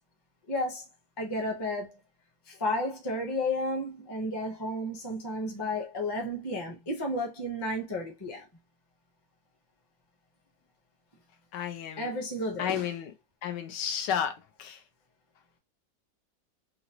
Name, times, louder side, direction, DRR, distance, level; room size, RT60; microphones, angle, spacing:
voice 1, 0.5-0.8 1.2-2.0 2.5-8.5 12.0-12.9, left 1 dB, 25° left, 0.6 m, -32 dB
voice 2, 11.5-12.1 12.6-13.1 13.4-14.8, left 8 dB, 80° left, 1.3 m, -32 dB
3.8 x 2.1 x 2.8 m
omnidirectional pair, 1.9 m